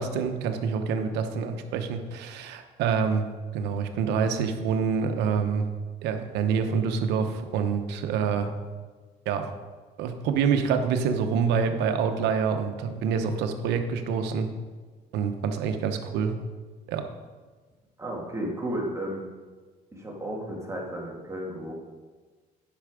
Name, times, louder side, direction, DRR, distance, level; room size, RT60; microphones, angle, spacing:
voice 1, 0.0-3.3 3.5-5.6 6.0-8.5 9.3-9.5 10.0-14.5 15.1-16.3 16.9-17.0, right 6 dB, 85° right, 6 dB, 1.0 m, -26 dB
voice 2, 18.0-19.3 19.9-21.7, right 1 dB, 15° right, -2 dB, 2.1 m, -33 dB
10.5 x 5.8 x 5.1 m, 1.4 s
cardioid pair, 110°, 17 cm